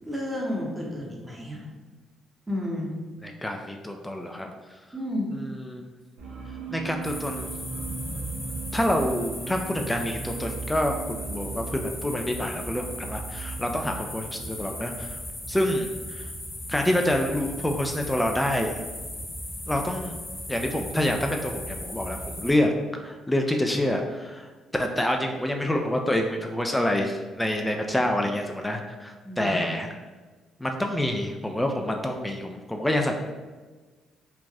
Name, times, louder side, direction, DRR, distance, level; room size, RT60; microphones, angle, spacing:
voice 1, 0.0-1.7 2.5-2.9 4.9-5.3 29.2-29.6, left 1 dB, 20° right, -2 dB, 0.9 m, -31 dB
voice 2, 3.2-4.5 5.3-5.8 6.7-7.5 8.7-15.2 15.5-16.3 16.7-18.7 19.7-20.2 20.5-22.7 23.0-24.5 24.8-29.9 30.6-33.2, left 1 dB, 10° left, 3 dB, 0.3 m, -27 dB
sound 1, 6.2-15.8, right 6 dB, 80° right, 0.5 m, -39 dB
sound 2, 7.0-22.5, left 1 dB, 25° left, 1.0 m, -37 dB
3.2 x 2.4 x 2.3 m, 1.3 s
hypercardioid pair, 50°, 0 cm